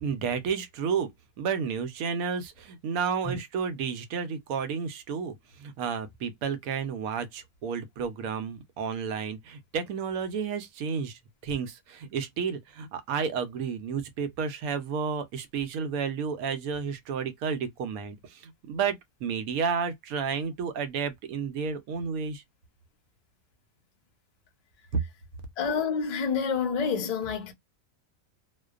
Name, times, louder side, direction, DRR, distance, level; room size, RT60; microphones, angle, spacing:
voice 1, 0.0-1.1 1.4-22.4 24.9-25.0, right 6 dB, 85° right, 1.1 m, -31 dB
voice 2, 25.6-27.5, left 5 dB, 50° left, 0.4 m, -28 dB
2.4 x 2.2 x 2.3 m
omnidirectional pair, 1.5 m